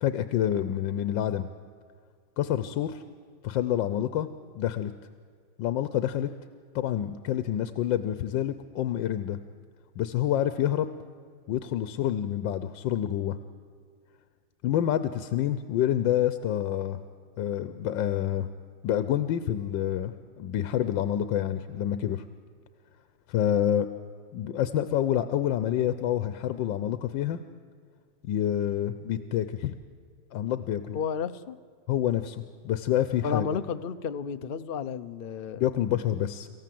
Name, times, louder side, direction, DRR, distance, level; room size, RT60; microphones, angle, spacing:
voice 1, 0.0-1.5 2.4-3.0 3.4-4.3 4.5-4.9 5.6-6.3 6.7-9.4 10.0-10.9 11.5-13.4 14.6-17.0 17.4-18.5 18.8-20.1 20.4-22.2 23.3-23.9 24.3-27.4 28.2-29.8 30.3-31.0 31.9-33.5 35.6-36.5, left 11 dB, 85° left, 12 dB, 1.5 m, -27 dB
voice 2, 30.9-31.6 33.2-35.6, left 6 dB, 60° left, 10 dB, 0.5 m, -32 dB
27.5 x 14.5 x 7.6 m, 2.1 s
omnidirectional pair, 2.0 m